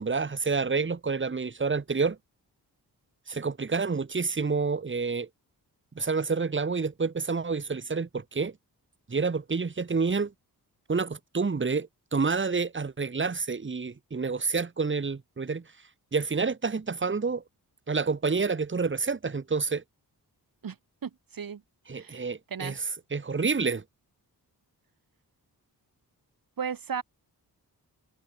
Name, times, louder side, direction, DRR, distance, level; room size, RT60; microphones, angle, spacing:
voice 1, 0.0-2.2 3.3-5.3 5.9-8.6 9.1-10.3 10.9-15.7 16.1-17.4 17.9-19.8 21.9-22.8 23.1-23.8, right 4 dB, 30° right, 1.6 m, -28 dB
voice 2, 21.0-21.6 21.9-22.8 26.6-27.0, right 7 dB, 60° right, 2.5 m, -35 dB
cardioid pair, 80°, 38 cm